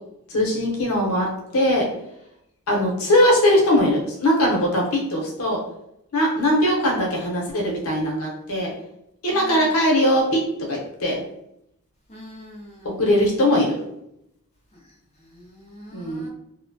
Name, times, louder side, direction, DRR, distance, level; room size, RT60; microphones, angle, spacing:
voice 1, 0.3-1.3 1.5-1.9 2.7-5.6 6.1-8.7 9.2-10.4 10.7-11.2 13.0-13.7 15.9-16.3, left 1 dB, 75° left, -2 dB, 0.8 m, -20 dB
voice 2, 9.3-9.7 12.1-12.9 15.2-16.3, equal, 30° left, -3 dB, 0.5 m, -43 dB
2.8 x 2.1 x 2.6 m, 0.80 s
head